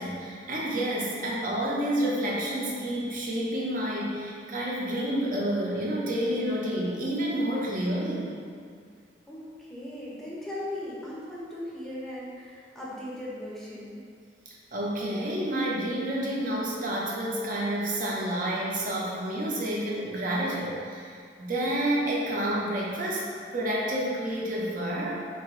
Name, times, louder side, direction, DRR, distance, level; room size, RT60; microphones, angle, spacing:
voice 1, 0.0-8.4 14.5-23.2 23.5-25.1, right 1 dB, 45° right, -4 dB, 0.8 m, -29 dB
voice 2, 9.3-14.0, left 1 dB, ahead, -7 dB, 0.7 m, -38 dB
3.7 x 2.9 x 4.6 m, 2.2 s
head